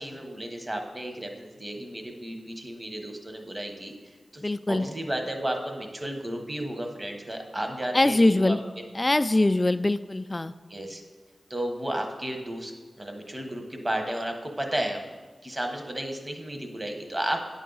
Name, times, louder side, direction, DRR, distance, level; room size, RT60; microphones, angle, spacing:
voice 1, 0.0-4.4 4.7-8.8 10.7-11.0 11.5-12.7 13.0-15.0 15.4-17.5, right 1 dB, 30° right, 4 dB, 1.2 m, -33 dB
voice 2, 4.4-4.8 7.9-8.6 8.9-10.5, left 2 dB, 30° left, 12 dB, 0.3 m, -22 dB
9.1 x 5.5 x 4.0 m, 1.3 s
cardioid pair, 45°, 0 cm